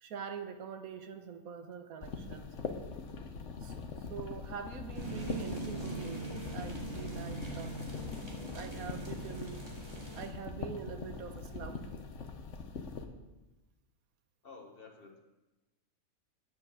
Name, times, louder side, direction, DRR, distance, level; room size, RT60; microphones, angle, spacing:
voice 1, 0.0-2.5 3.6-3.8 4.1-7.7 8.5-9.6 10.1-11.9, right 7 dB, 85° right, 8 dB, 1.3 m, -44 dB
sound 1, 2.0-13.1, left 4 dB, 60° left, 1.2 m, -42 dB
sound 2, 4.9-10.3, right 2 dB, 20° right, 2.1 m, -42 dB
voice 2, 14.4-15.2, left 4 dB, 45° left, 2 dB, 1.4 m, -51 dB
9.9 x 7.9 x 6.3 m, 1.1 s
omnidirectional pair, 1.5 m